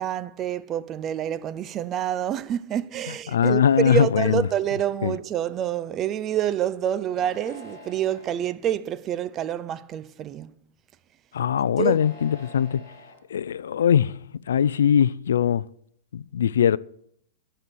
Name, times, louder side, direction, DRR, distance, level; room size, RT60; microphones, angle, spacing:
voice 1, 0.0-10.5 11.8-12.0, right 10 dB, 30° right, 0.5 m, -27 dB
voice 2, 3.3-4.5 5.0-5.1 11.3-12.9 13.3-15.7 16.1-16.8, left 8 dB, 85° left, 0.3 m, -21 dB
sound 1, 7.0-8.5 9.2-9.7 11.7-13.2, left 2 dB, 40° left, 4.8 m, -46 dB
10.0 x 6.9 x 6.1 m
hypercardioid pair, 140°, 0 cm